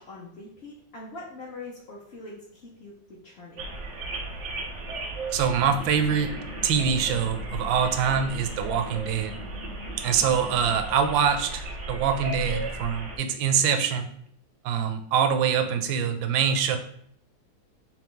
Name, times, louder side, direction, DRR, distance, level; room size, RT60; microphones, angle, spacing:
voice 1, 0.0-3.7, left 2 dB, 55° left, -5 dB, 0.7 m, -43 dB
sound 1, 3.6-13.2, right 2 dB, 65° right, 0.7 m, -36 dB
voice 2, 5.3-6.4 6.6-9.4 10.0-14.1 14.6-16.8, right 7 dB, 85° right, 7 dB, 1.3 m, -24 dB
sound 2, 5.7-10.8, left 4 dB, 80° left, 1.5 m, -44 dB
3.6 x 3.0 x 3.7 m, 0.66 s
omnidirectional pair, 2.0 m